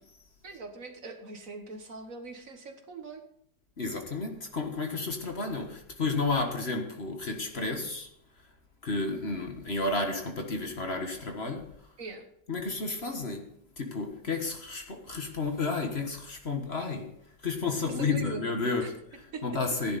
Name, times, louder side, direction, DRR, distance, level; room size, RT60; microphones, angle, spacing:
voice 1, 0.4-3.2 12.0-12.3 17.9-18.4 18.8-18.9 19.3-19.4, right 4 dB, 55° right, 1.7 m, -41 dB
voice 2, 3.8-8.1 8.8-11.7 12.5-13.5 13.8-17.1 17.4-20.0, left 3 dB, 40° left, 1.6 m, -32 dB
16.0 x 10.5 x 4.2 m
omnidirectional pair, 1.7 m